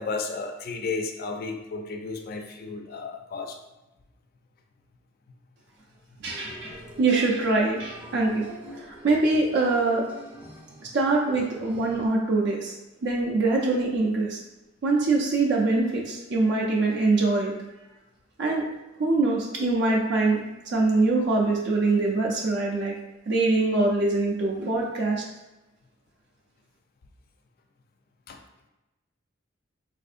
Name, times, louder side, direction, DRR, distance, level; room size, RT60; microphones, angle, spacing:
voice 1, 0.0-3.6 28.3-28.4, left 4 dB, 50° left, 4 dB, 0.4 m, -33 dB
sound 1, 6.2-12.1, equal, 10° right, 0.6 m, -44 dB
voice 2, 6.2-8.5 8.7-10.0 10.8-12.8 13.0-14.4 14.8-17.5 18.4-18.6 19.0-20.4 20.7-22.9 23.3-25.2, right 3 dB, 60° right, -1 dB, 0.5 m, -23 dB
4.2 x 2.5 x 2.5 m, 1.0 s
head